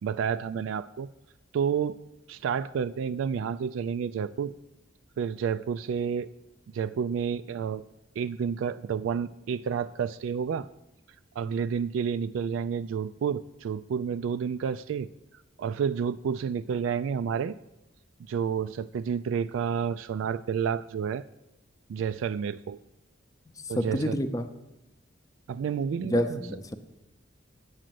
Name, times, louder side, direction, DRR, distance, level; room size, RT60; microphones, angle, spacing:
voice 1, 0.0-1.1 1.5-2.0 2.3-4.5 5.2-6.3 6.7-7.8 8.2-10.7 11.4-15.1 15.6-17.5 18.3-21.2 21.9-22.8 23.7-24.2 25.5-26.4, right 7 dB, 85° right, 12 dB, 0.3 m, -30 dB
voice 2, 23.8-24.5 26.1-26.8, equal, 20° left, 8 dB, 0.6 m, -28 dB
8.9 x 6.3 x 7.6 m, 0.95 s
head